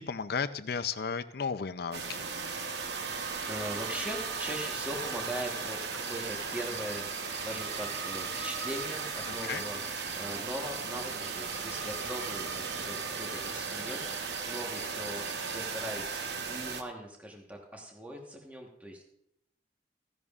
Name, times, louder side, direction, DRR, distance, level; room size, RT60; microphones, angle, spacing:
voice 1, 0.0-2.3 9.3-9.6, left 6 dB, 60° left, 12 dB, 0.5 m, -34 dB
sound 1, 1.9-16.8, right 5 dB, 65° right, 0.8 m, -36 dB
voice 2, 3.5-9.8 10.1-16.2 16.5-19.0, equal, 10° right, 0 dB, 1.2 m, -40 dB
sound 2, 6.0-16.0, right 4 dB, 40° right, 1.0 m, -48 dB
15.0 x 10.5 x 2.4 m, 0.77 s
head